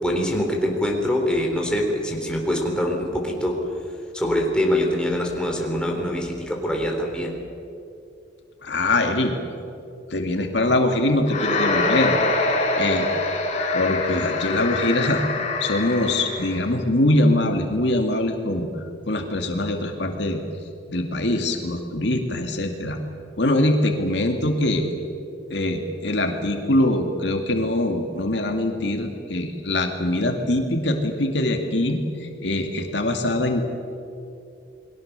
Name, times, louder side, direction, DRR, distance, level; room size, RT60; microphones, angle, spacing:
voice 1, 0.0-3.6 4.1-7.4, equal, 5° left, 0 dB, 3.8 m, -24 dB
voice 2, 8.6-9.3 10.1-12.5 12.8-13.1 13.7-15.2 15.6-18.7 19.1-20.4 20.9-23.0 23.4-24.9 25.5-33.6, left 1 dB, 65° left, 4 dB, 2.2 m, -23 dB
sound 1, 11.3-16.6, left 3 dB, 40° left, 3.3 m, -24 dB
29.0 x 21.5 x 6.8 m, 2.6 s
head